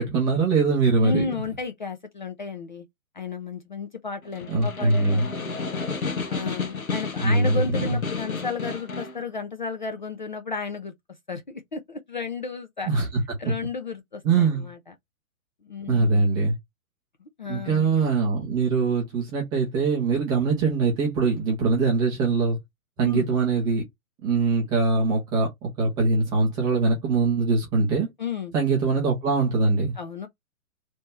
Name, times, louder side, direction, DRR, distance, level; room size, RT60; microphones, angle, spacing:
voice 1, 0.0-1.2 4.5-5.3 7.2-7.5 12.9-13.1 14.2-14.7 15.9-16.6 17.5-22.6 23.0-23.8 24.2-28.1 28.5-29.9, right 4 dB, 10° right, 0.6 m, -22 dB
voice 2, 1.0-2.9 3.1-5.9 6.3-10.9 11.3-12.9 13.4-14.8 15.7-16.3 17.2-17.9 23.0-23.3 28.2-28.5 30.0-30.3, left 4 dB, 35° left, 0.4 m, -33 dB
Snare drum, 4.2-9.2, left 4 dB, 75° left, 1.1 m, -31 dB
3.4 x 2.7 x 4.2 m
figure-of-eight pair, 125°, 43 cm